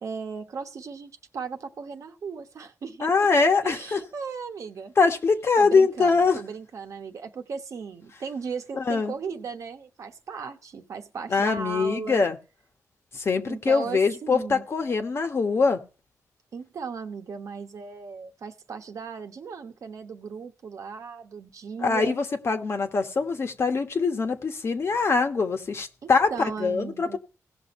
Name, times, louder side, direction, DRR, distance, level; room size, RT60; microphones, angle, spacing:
voice 1, 0.0-3.1 3.6-4.9 5.6-12.2 13.5-14.6 16.5-22.2 26.0-27.2, right 5 dB, 65° right, 1.2 m, -37 dB
voice 2, 3.0-4.0 5.0-6.4 8.8-9.1 11.3-12.4 13.1-15.8 21.8-27.2, left 4 dB, 50° left, 1.3 m, -23 dB
17.0 x 6.2 x 4.3 m
wide cardioid pair, 120°, 6 cm